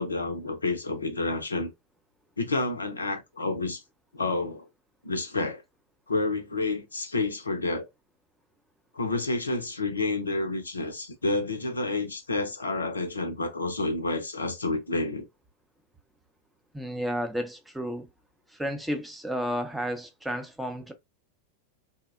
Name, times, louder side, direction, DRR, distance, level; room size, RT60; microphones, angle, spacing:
voice 1, 0.0-1.7 2.4-3.8 4.1-4.7 5.0-5.6 6.1-7.9 8.9-15.3, left 2 dB, 75° left, 0.4 m, -29 dB
voice 2, 16.7-18.1 18.5-20.9, equal, 5° right, 0.5 m, -32 dB
2.7 x 2.0 x 2.3 m
figure-of-eight pair, 90°, 0 cm